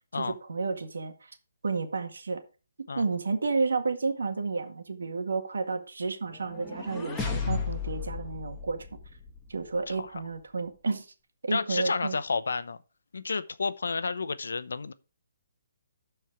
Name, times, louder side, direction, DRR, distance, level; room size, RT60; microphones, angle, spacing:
voice 1, 0.1-1.3 1.6-2.4 2.9-8.9 9.5-11.1 11.4-12.2, right 4 dB, 85° right, 1.8 m, -31 dB
sound 1, 6.3-9.5, left 5 dB, 10° left, 1.2 m, -34 dB
voice 2, 9.9-10.2 11.5-12.8 13.1-14.9, left 4 dB, 85° left, 0.8 m, -31 dB
12.5 x 4.5 x 4.7 m
hypercardioid pair, 170°, 0 cm